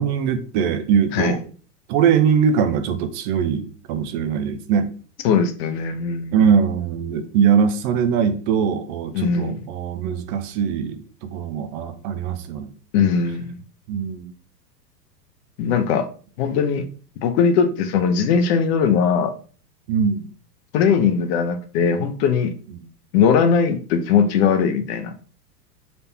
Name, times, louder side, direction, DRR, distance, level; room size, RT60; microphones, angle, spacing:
voice 1, 0.0-1.4 1.9-4.9 6.3-12.7 13.9-14.3 19.9-20.2 22.7-22.9, right 7 dB, 30° right, 8 dB, 0.5 m, -21 dB
voice 2, 5.2-6.4 9.1-9.6 12.9-13.6 15.6-16.1 16.4-16.8 17.2-19.3 20.7-22.5 23.1-25.1, left 6 dB, 40° left, 9 dB, 0.7 m, -19 dB
4.1 x 3.3 x 2.7 m, 0.40 s
hypercardioid pair, 100°, 48 cm